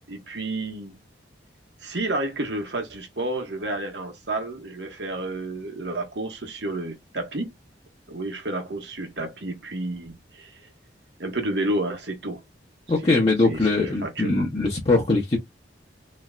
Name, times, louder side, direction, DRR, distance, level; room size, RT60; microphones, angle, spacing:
voice 1, 0.1-0.9 1.8-7.5 8.1-10.5 11.2-12.4 13.1-14.4, right 2 dB, 70° right, 1.3 m, -30 dB
voice 2, 12.9-15.4, left 2 dB, 30° left, 0.9 m, -21 dB
3.4 x 3.2 x 2.4 m
head